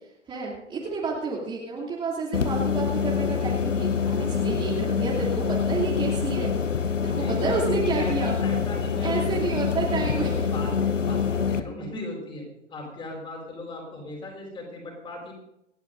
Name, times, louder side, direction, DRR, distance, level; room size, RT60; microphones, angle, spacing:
voice 1, 0.3-8.4 9.0-10.5 11.3-11.4, right 4 dB, 15° right, -6 dB, 2.8 m, -30 dB
sound 1, 2.3-11.6, left 6 dB, 85° left, 0.9 m, -26 dB
voice 2, 7.0-9.7 10.3-15.3, left 1 dB, 15° left, 0 dB, 4.6 m, -38 dB
28.0 x 11.0 x 2.6 m, 0.83 s
figure-of-eight pair, 120°, 36 cm